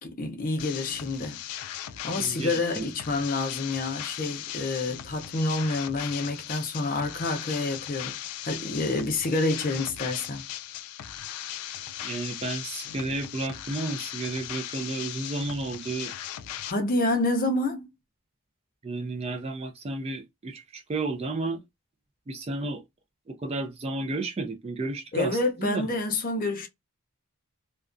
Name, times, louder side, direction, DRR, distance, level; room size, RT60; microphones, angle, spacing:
voice 1, 0.0-1.4 2.0-8.2 8.4-10.4 16.7-17.9 25.1-26.7, left 2 dB, 40° left, 0.5 m, -28 dB
sound 1, 0.6-16.7, left 12 dB, 85° left, 0.3 m, -38 dB
voice 2, 2.2-2.8 12.0-16.1 18.8-21.6 22.3-22.8 23.3-25.8, right 2 dB, 25° right, 0.3 m, -32 dB
2.3 x 2.2 x 2.4 m
head